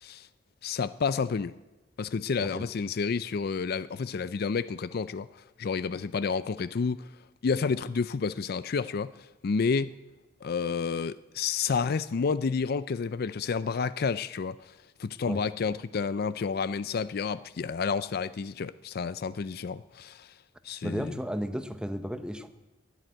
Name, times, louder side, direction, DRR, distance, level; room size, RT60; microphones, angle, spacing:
voice 1, 0.6-1.5 2.0-5.3 5.6-7.1 7.4-9.1 9.4-9.9 10.4-14.7 15.0-20.3 20.6-21.1, left 5 dB, 55° left, 0.4 m, -30 dB
voice 2, 20.8-22.5, equal, 5° right, 0.8 m, -34 dB
12.0 x 10.5 x 9.9 m
head